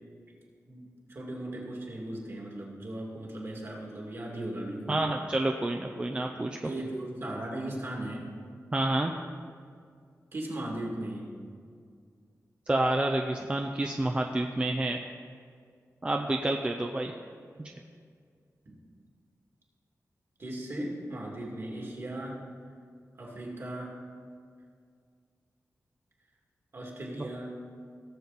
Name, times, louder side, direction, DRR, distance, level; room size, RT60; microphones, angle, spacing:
voice 1, 0.7-5.1 6.6-8.3 10.3-11.3 18.7-18.8 20.4-22.4 23.2-24.0 26.7-27.6, right 1 dB, 45° right, -2 dB, 2.3 m, -37 dB
voice 2, 4.9-6.6 8.7-9.1 12.7-15.0 16.0-17.1 17.6-17.7, right 1 dB, 20° right, 3 dB, 0.5 m, -28 dB
17.0 x 7.1 x 4.1 m, 2.2 s
wide cardioid pair, 155°, 6 cm